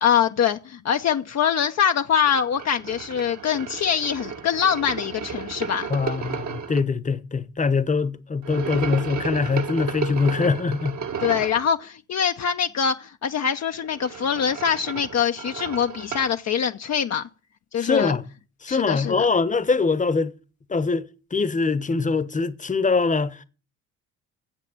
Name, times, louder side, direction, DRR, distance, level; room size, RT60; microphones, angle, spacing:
voice 1, 0.0-5.9 11.2-17.2 17.7-18.2 18.7-19.3, left 8 dB, 45° left, 0.8 m, -24 dB
sound 1, 2.3-6.8 8.4-11.7 13.8-16.4, right 6 dB, 50° right, 1.5 m, -33 dB
voice 2, 5.9-11.0 17.8-18.2 18.6-20.3 20.7-21.1 21.3-23.4, left 4 dB, 20° left, 1.1 m, -23 dB
9.0 x 7.5 x 8.9 m
hypercardioid pair, 60°, 37 cm